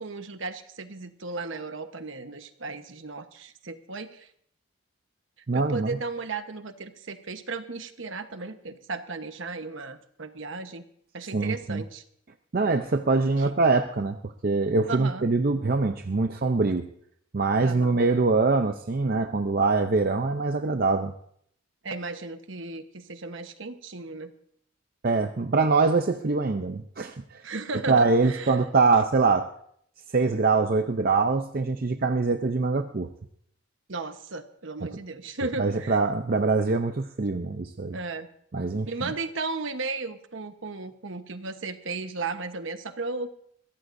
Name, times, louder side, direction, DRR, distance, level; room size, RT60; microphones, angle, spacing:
voice 1, 0.0-4.3 5.5-10.8 11.1-12.0 13.4-13.5 14.9-15.3 17.6-18.0 21.8-24.3 27.4-28.6 33.9-36.0 37.9-38.3 38.9-43.3, right 3 dB, 65° right, 8 dB, 1.1 m, -35 dB
voice 2, 5.5-5.9 11.3-11.8 12.5-16.9 17.3-21.1 25.0-27.4 27.9-29.5 30.1-33.1 34.8-34.9 35.6-38.0 38.5-39.1, right 3 dB, 45° right, 6 dB, 0.5 m, -24 dB
22.0 x 16.0 x 2.6 m, 0.68 s
head